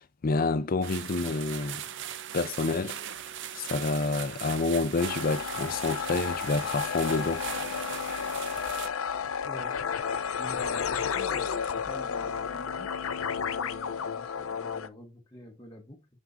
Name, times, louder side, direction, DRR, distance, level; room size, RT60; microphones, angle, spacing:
voice 1, 0.0-1.8 2.3-3.0 3.5-7.5, left 3 dB, 45° left, 0.5 m, -28 dB
sound 1, 0.8-8.9, right 10 dB, 60° right, 0.5 m, -39 dB
sound 2, 1.6-9.9, right 4 dB, 85° right, 4.5 m, -58 dB
sound 3, 5.0-14.9, left 7 dB, 90° left, 0.6 m, -32 dB
voice 2, 9.5-9.8 10.4-13.1 13.5-16.1, left 1 dB, 20° left, 1.0 m, -46 dB
6.3 x 5.9 x 2.6 m
head